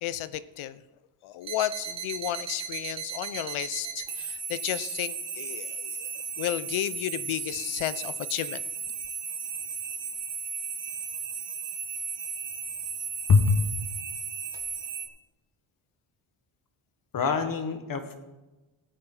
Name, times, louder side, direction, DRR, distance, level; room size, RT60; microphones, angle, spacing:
voice 1, 0.0-0.8 1.2-6.1 6.4-8.6, left 13 dB, 80° left, 16 dB, 0.7 m, -33 dB
sound 1, 1.4-15.1, right 6 dB, 60° right, 2.0 m, -35 dB
voice 2, 13.3-13.6 17.1-18.2, left 4 dB, 45° left, 8 dB, 1.5 m, -23 dB
18.5 x 8.7 x 3.9 m, 1.1 s
cardioid pair, 120°, 48 cm